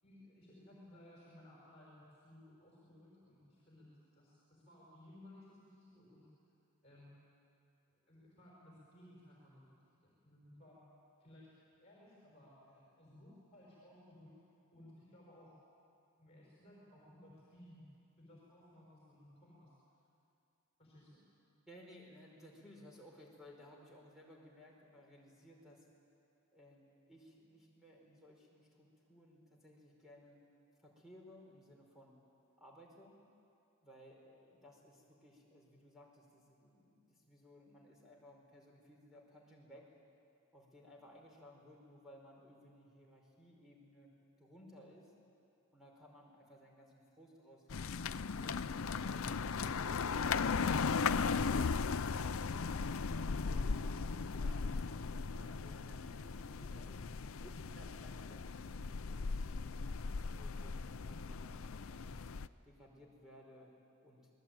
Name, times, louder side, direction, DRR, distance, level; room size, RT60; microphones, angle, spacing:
voice 1, 0.0-6.3 6.8-7.2 8.1-9.6 10.0-10.8 11.2-11.5 11.8-14.4 14.7-15.6 16.2-17.9 18.2-19.7 20.8-21.2, left 1 dB, 30° left, -5 dB, 5.6 m, -59 dB
voice 2, 21.7-25.9 26.5-30.4 30.8-32.1 32.6-33.2 33.8-39.9 40.5-44.1 44.4-45.1 45.7-48.6 49.8-59.6 60.3-62.2 62.6-63.7 64.0-64.3, left 1 dB, ahead, -2 dB, 4.8 m, -59 dB
sound 1, 47.7-62.5, left 5 dB, 70° left, 0.6 m, -37 dB
27.5 x 20.0 x 9.2 m, 2.5 s
head